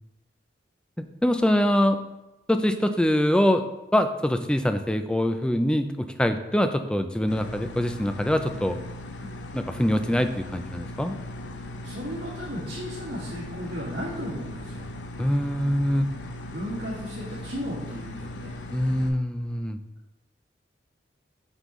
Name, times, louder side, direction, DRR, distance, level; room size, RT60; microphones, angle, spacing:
voice 1, 1.2-2.0 2.5-3.6 3.9-8.8 9.5-11.1 15.2-16.1 18.7-19.8, equal, 5° left, 8 dB, 0.3 m, -24 dB
sound 1, 7.3-19.1, left 1 dB, 75° left, 0.7 m, -38 dB
voice 2, 11.8-14.9 16.5-18.5, equal, 70° right, -8 dB, 1.9 m, -35 dB
7.9 x 5.3 x 3.1 m, 0.97 s
head